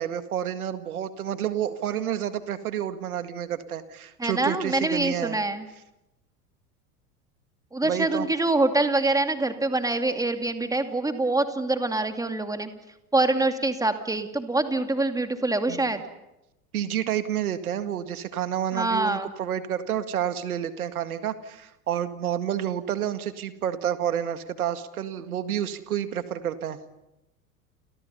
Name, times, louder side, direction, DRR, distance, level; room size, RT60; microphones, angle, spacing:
voice 1, 0.0-5.4 7.8-8.3 15.7-15.8 16.7-26.8, right 10 dB, 70° right, 11 dB, 2.0 m, -29 dB
voice 2, 4.2-5.7 7.7-12.7 13.1-16.0 18.7-19.3, right 2 dB, 10° right, 7 dB, 2.3 m, -25 dB
29.5 x 29.5 x 5.6 m, 0.92 s
figure-of-eight pair, 80°, 46 cm